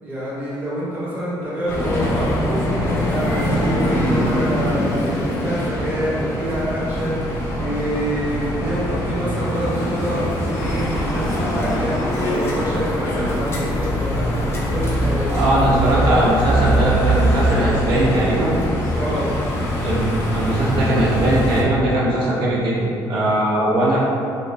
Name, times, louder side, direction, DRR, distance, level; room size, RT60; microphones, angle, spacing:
voice 1, 0.0-2.6 3.0-15.6 18.9-19.4, equal, 20° right, -9 dB, 0.8 m, -26 dB
sound 1, 1.7-21.6, equal, 30° left, 0.5 m, -22 dB
voice 2, 15.3-18.6 19.8-24.0, right 1 dB, 65° right, -6 dB, 0.6 m, -19 dB
3.0 x 2.6 x 3.2 m, 2.6 s
cardioid pair, 180°, 9 cm